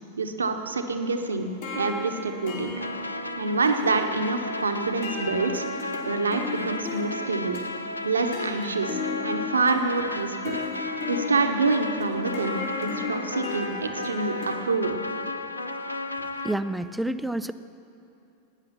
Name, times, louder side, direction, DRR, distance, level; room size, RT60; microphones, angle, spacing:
voice 1, 0.2-1.5 1.7-2.9 3.3-5.7 6.0-7.6 8.0-10.6 11.1-12.6 12.8-15.0, right 3 dB, 75° right, 6 dB, 1.0 m, -27 dB
sound 1, 1.4-14.5, left 4 dB, 55° left, 3.1 m, -36 dB
sound 2, 2.8-16.5, left 2 dB, 80° left, 0.6 m, -34 dB
voice 2, 16.4-17.5, right 1 dB, 5° right, 13 dB, 0.4 m, -28 dB
17.0 x 9.8 x 5.8 m, 2.8 s
figure-of-eight pair, 90°, 0 cm